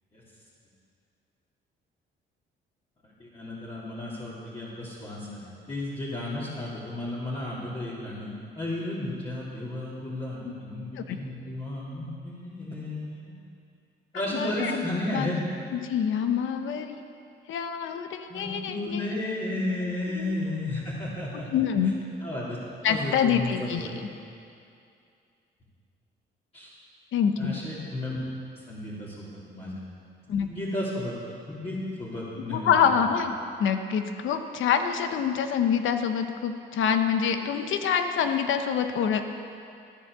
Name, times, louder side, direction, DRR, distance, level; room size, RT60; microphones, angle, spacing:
voice 1, 3.2-13.3 14.1-15.4 18.3-21.6 22.2-22.6 22.8-24.0 26.5-26.7 27.4-28.2 28.7-29.7 30.4-31.1 31.6-32.8, left 1 dB, 30° left, -10 dB, 3.6 m, -33 dB
voice 2, 14.3-14.8 15.1-15.4 15.7-17.0 17.5-19.0 20.1-20.4 21.5-21.9 22.8-23.9 27.1-27.6 30.3-30.5 32.5-39.3, left 7 dB, 75° left, 7 dB, 1.1 m, -26 dB
14.0 x 10.5 x 6.9 m, 2.4 s
cardioid pair, 90°, 20 cm